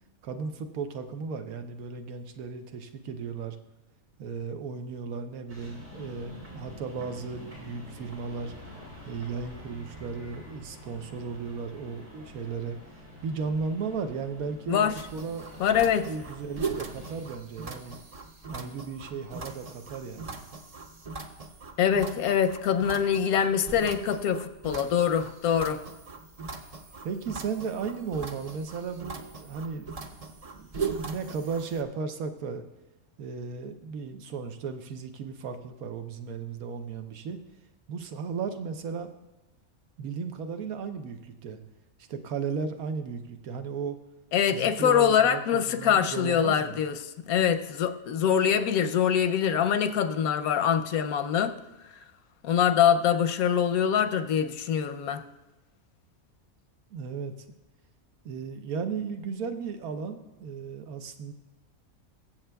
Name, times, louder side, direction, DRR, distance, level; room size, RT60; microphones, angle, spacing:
voice 1, 0.2-3.6 4.2-8.5 9.1-12.8 13.2-15.6 16.1-18.0 18.5-20.4 27.0-29.9 30.5-32.6 33.2-37.4 37.9-39.1 40.0-41.6 42.0-44.0 44.5-46.8 56.9-57.3 58.2-61.3, right 5 dB, 85° right, 1.2 m, -35 dB
sound 1, 5.5-17.2, left 1 dB, 65° right, 4.5 m, -47 dB
sound 2, 15.0-31.8, right 4 dB, 50° right, 0.4 m, -40 dB
voice 2, 15.6-16.1 21.8-25.8 44.3-47.0 47.3-51.5 52.4-55.2, left 8 dB, 85° left, 1.1 m, -24 dB
22.0 x 7.4 x 2.3 m
omnidirectional pair, 1.5 m